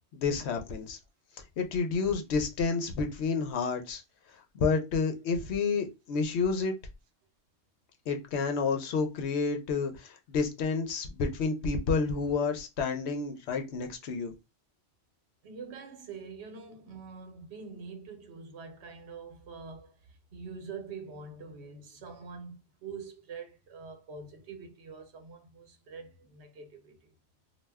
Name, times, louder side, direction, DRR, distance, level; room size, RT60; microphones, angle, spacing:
voice 1, 0.1-1.0 1.6-4.0 4.5-6.7 8.1-14.3, left 4 dB, 80° left, 0.9 m, -30 dB
voice 2, 15.4-27.1, right 5 dB, 80° right, 1.0 m, -45 dB
2.3 x 2.1 x 3.3 m
omnidirectional pair, 1.1 m